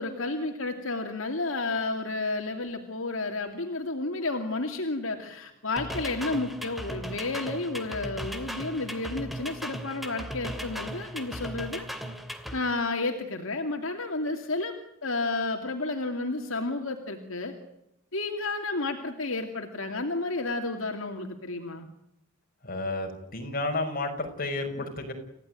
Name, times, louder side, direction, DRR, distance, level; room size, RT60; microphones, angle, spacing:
voice 1, 0.0-11.9 12.5-14.7 15.0-17.5 18.1-21.9 24.8-24.9, left 3 dB, 75° left, 4 dB, 2.6 m, -31 dB
sound 1, 5.8-12.6, equal, ahead, 2.7 m, -37 dB
voice 2, 22.6-25.1, left 2 dB, 45° left, 3 dB, 6.2 m, -31 dB
29.5 x 16.5 x 9.3 m, 0.84 s
head